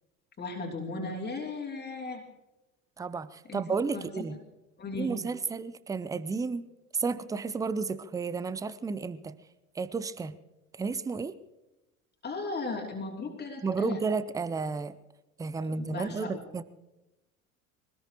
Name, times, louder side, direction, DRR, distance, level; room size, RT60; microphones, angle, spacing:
voice 1, 0.4-2.2 3.5-3.6 3.9-4.3 4.8-5.1 12.2-14.0 15.6-16.5, left 3 dB, 25° left, 0 dB, 3.1 m, -36 dB
voice 2, 3.0-4.4 5.0-6.7 6.9-9.4 9.7-10.4 10.7-11.4 13.6-15.0 15.4-16.6, right 4 dB, 10° right, 17 dB, 0.6 m, -32 dB
24.0 x 18.5 x 3.0 m, 1.0 s
figure-of-eight pair, 70°, 41 cm